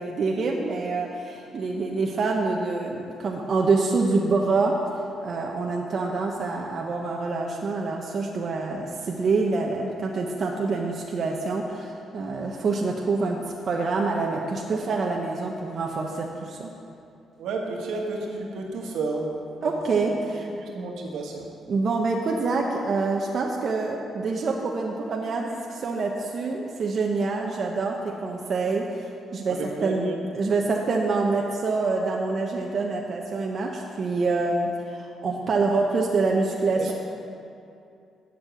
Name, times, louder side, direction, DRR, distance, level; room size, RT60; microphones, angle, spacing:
voice 1, 0.0-4.8 5.2-13.4 13.6-16.7 19.6-20.5 21.7-29.0 29.3-36.9, right 3 dB, 50° right, -1 dB, 1.0 m, -26 dB
voice 2, 17.4-19.3 19.6-19.8 20.6-21.5 29.5-30.2 36.7-36.9, right 3 dB, 80° right, 0 dB, 1.7 m, -31 dB
8.6 x 7.4 x 7.8 m, 2.5 s
cardioid pair, 90°, 0 cm